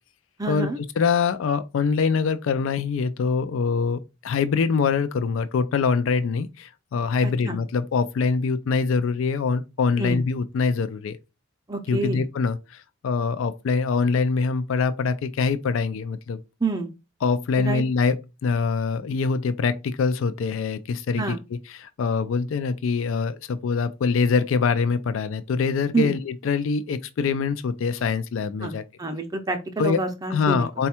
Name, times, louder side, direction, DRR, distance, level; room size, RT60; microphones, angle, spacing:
voice 1, 0.4-0.8 7.2-7.6 10.0-10.2 11.7-12.2 16.6-16.9 17.6-17.8 21.2-21.4 25.9-26.1 28.6-30.7, right 3 dB, 20° right, 0.5 m, -28 dB
voice 2, 1.0-11.2 11.9-16.4 17.2-28.8 29.8-30.0 30.3-30.9, left 5 dB, 80° left, 0.4 m, -24 dB
4.2 x 2.3 x 4.2 m
head